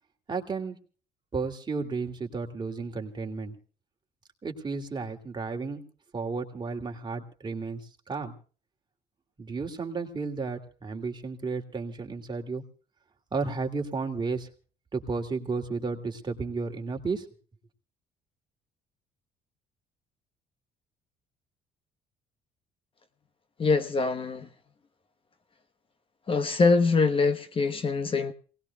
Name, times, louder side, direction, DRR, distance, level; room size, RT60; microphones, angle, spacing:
voice 1, 0.3-0.8 1.3-3.5 4.4-5.8 6.1-8.3 9.4-12.6 13.3-14.5 14.9-17.3, right 4 dB, 25° right, 2.7 m, -33 dB
voice 2, 23.6-24.5 26.3-28.3, left 4 dB, 30° left, 1.1 m, -24 dB
27.5 x 19.0 x 2.3 m
cardioid pair, 110°, 17 cm